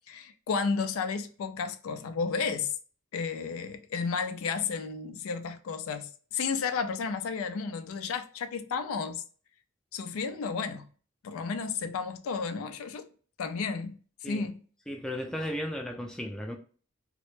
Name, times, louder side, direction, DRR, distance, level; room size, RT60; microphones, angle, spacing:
voice 1, 0.1-2.7 3.1-9.2 9.9-10.9 11.2-13.1 13.4-14.6, left 5 dB, 85° left, 0.4 m, -32 dB
voice 2, 14.9-16.6, equal, 5° left, 0.3 m, -35 dB
2.1 x 2.0 x 3.0 m
head